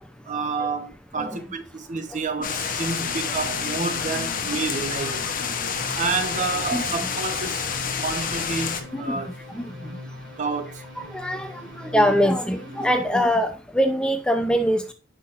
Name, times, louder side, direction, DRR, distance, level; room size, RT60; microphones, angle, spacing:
voice 1, 0.3-5.3 5.9-7.7 8.0-9.3 10.4-10.8, right 4 dB, 40° right, 1.0 m, -29 dB
sound 1, 2.4-8.8, left 6 dB, 45° left, 0.9 m, -28 dB
sound 2, 2.8-9.5, left 3 dB, 70° left, 1.2 m, -43 dB
sound 3, 5.8-13.3, left 1 dB, 65° right, 3.8 m, -41 dB
voice 2, 11.1-14.8, equal, 5° left, 0.6 m, -23 dB
9.8 x 5.9 x 2.5 m
head